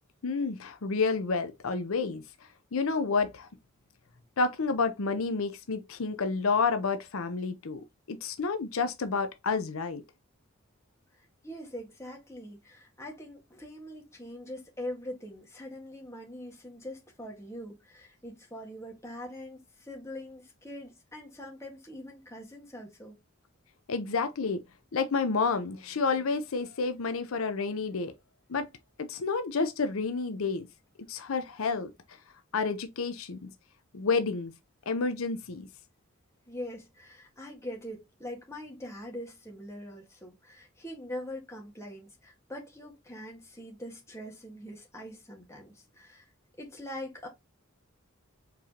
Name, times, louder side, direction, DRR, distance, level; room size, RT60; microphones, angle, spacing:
voice 1, 0.2-2.2 2.7-3.5 4.4-10.0 23.9-24.6 24.9-28.1 28.5-28.7 29.0-30.7 31.1-31.9 32.5-33.5 33.9-34.5 34.9-35.7, left 4 dB, 85° left, 0.6 m, -30 dB
voice 2, 11.1-23.2 36.5-46.3 46.6-47.3, left 1 dB, 15° left, 1.6 m, -43 dB
4.7 x 3.7 x 2.9 m
head